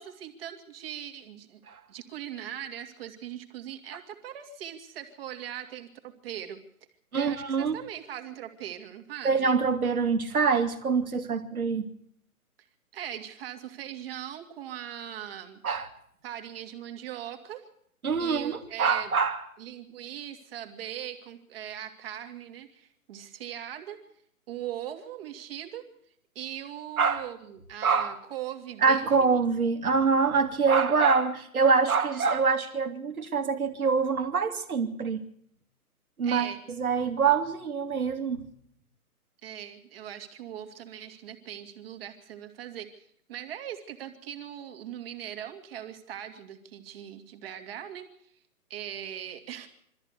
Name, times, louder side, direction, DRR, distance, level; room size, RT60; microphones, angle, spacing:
voice 1, 0.0-1.6 1.9-6.6 7.1-9.5 12.9-15.6 16.2-17.7 18.2-19.1 19.6-24.0 24.5-25.9 26.3-29.4 36.2-36.6 39.4-48.3 48.7-49.7, right 10 dB, 40° right, 2.5 m, -40 dB
voice 2, 7.1-7.8 9.2-11.9 15.6-15.9 18.0-19.4 27.0-27.2 27.8-28.2 28.8-35.2 36.2-36.5 36.8-38.4, right 5 dB, 70° right, 2.6 m, -25 dB
23.5 x 14.0 x 8.2 m
hypercardioid pair, 145°, 45 cm